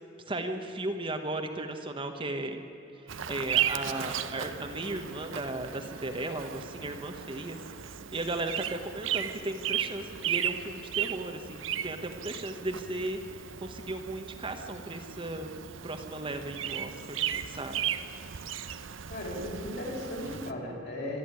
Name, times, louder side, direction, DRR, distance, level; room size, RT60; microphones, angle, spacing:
voice 1, 0.3-2.6 3.3-7.6 7.8-13.2 13.6-15.5 15.8-17.8, right 2 dB, 25° right, 5 dB, 1.2 m, -36 dB
Bird vocalization bird call bird song, 3.1-20.5, right 9 dB, 80° right, 0.8 m, -36 dB
voice 2, 19.1-21.2, left 1 dB, 55° left, -2 dB, 5.5 m, -36 dB
25.5 x 11.0 x 9.5 m, 2.9 s
head